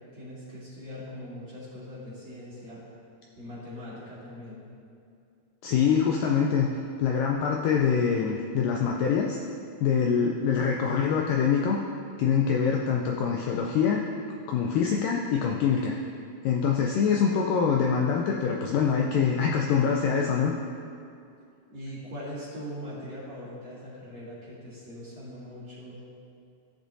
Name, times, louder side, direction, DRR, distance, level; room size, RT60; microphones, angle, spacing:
voice 1, 0.1-2.8 3.4-4.6 21.7-26.0, equal, 35° right, -10 dB, 2.5 m, -41 dB
voice 2, 5.6-6.7 7.0-9.4 9.8-11.8 12.2-14.0 14.5-16.0 16.4-20.5, left 6 dB, 90° left, 0 dB, 1.9 m, -24 dB
15.5 x 6.9 x 2.7 m, 2.4 s
omnidirectional pair, 4.6 m